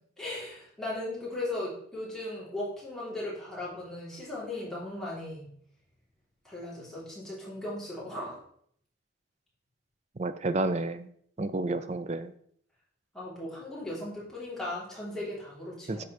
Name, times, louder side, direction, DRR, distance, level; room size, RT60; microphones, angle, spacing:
voice 1, 0.2-5.5 6.4-8.4 11.4-11.6 13.1-16.1, left 1 dB, 5° left, -8 dB, 3.0 m, -37 dB
voice 2, 10.2-11.1 11.4-12.3 15.9-16.0, right 2 dB, 35° right, 12 dB, 0.4 m, -30 dB
8.8 x 6.6 x 3.2 m, 0.63 s
head